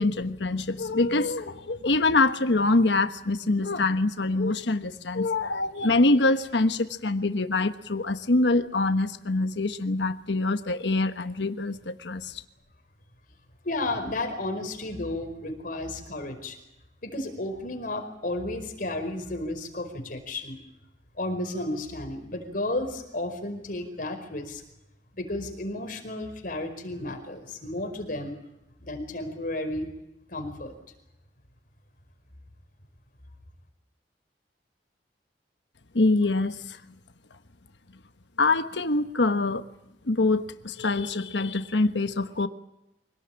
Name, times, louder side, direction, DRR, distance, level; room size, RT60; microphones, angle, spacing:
voice 1, 0.0-12.4 35.9-36.8 38.4-39.6 40.1-42.5, left 2 dB, 90° left, 9 dB, 1.3 m, -25 dB
voice 2, 13.6-16.6 17.0-20.6 21.2-24.6 25.2-28.3 28.8-29.9 30.3-30.7, left 2 dB, 55° left, 5 dB, 4.9 m, -33 dB
25.5 x 18.5 x 8.8 m, 0.90 s
head